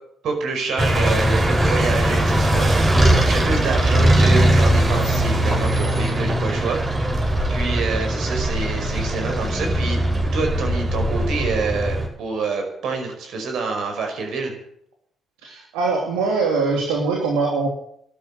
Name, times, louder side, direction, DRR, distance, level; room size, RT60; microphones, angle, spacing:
voice 1, 0.2-6.8 7.1-10.0 10.3-14.5, right 4 dB, 65° right, 4 dB, 5.3 m, -27 dB
sound 1, 0.8-12.1, right 1 dB, 35° right, 5.8 m, -20 dB
voice 2, 15.4-17.7, right 4 dB, 80° right, 0 dB, 3.0 m, -22 dB
12.5 x 11.0 x 9.8 m, 0.69 s
hypercardioid pair, 50°, 0 cm